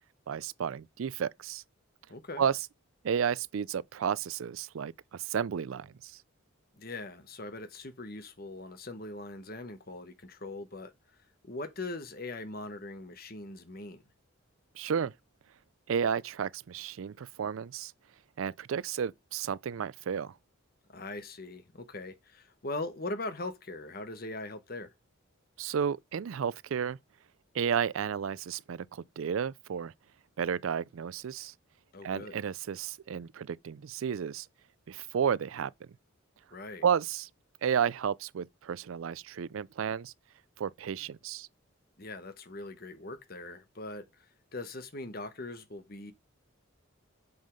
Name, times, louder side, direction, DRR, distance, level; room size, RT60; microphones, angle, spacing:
voice 1, 0.3-1.6 2.4-2.6 3.0-5.9 14.8-15.1 15.9-17.9 18.4-20.3 25.6-27.0 27.5-29.9 30.4-31.5 32.0-34.5 34.9-35.7 36.8-37.3 37.6-40.1 40.6-41.5, right 7 dB, 80° right, 0.4 m, -32 dB
voice 2, 2.1-2.4 6.8-10.9 11.4-14.0 20.9-24.9 31.9-32.3 36.5-36.8 42.0-44.1 44.5-46.1, left 2 dB, 45° left, 1.3 m, -41 dB
8.0 x 5.6 x 5.2 m
head